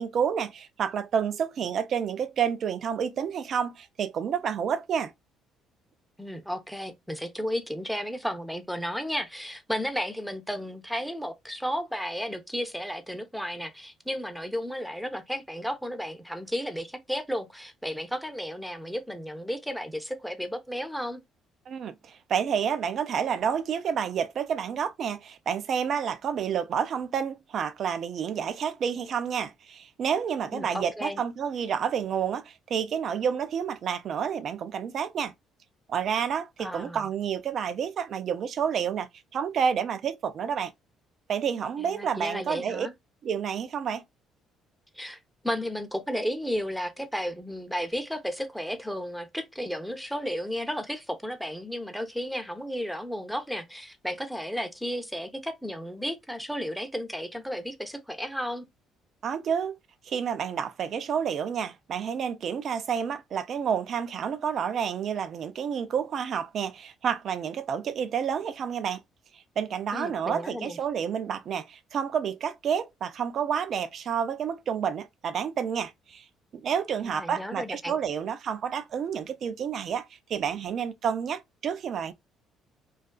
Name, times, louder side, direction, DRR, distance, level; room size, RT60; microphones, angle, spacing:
voice 1, 0.0-5.1 21.7-35.3 35.9-40.7 41.3-42.9 43.2-44.0 59.2-59.8 60.0-69.0 69.3-76.3 76.6-82.1, right 7 dB, 55° right, 0.4 m, -29 dB
voice 2, 6.2-21.2 30.5-31.2 36.6-37.1 41.8-42.9 44.9-58.6 69.9-70.8 77.0-78.0, equal, ahead, 0.7 m, -33 dB
2.4 x 2.4 x 2.2 m
hypercardioid pair, 60°, 0 cm